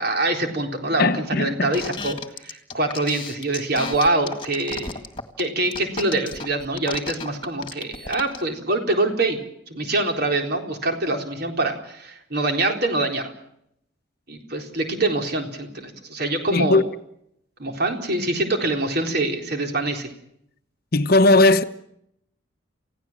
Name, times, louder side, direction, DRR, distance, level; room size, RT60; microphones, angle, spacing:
voice 1, 0.0-2.2 2.4-5.0 5.4-9.4 9.7-13.3 14.3-16.8 17.6-20.1, right 2 dB, 50° right, 4.0 m, -24 dB
voice 2, 1.0-1.7 16.5-16.8 20.9-21.6, left 2 dB, 50° left, 0.9 m, -17 dB
sound 1, 1.7-8.4, left 4 dB, 25° left, 1.9 m, -33 dB
29.5 x 16.5 x 7.4 m
head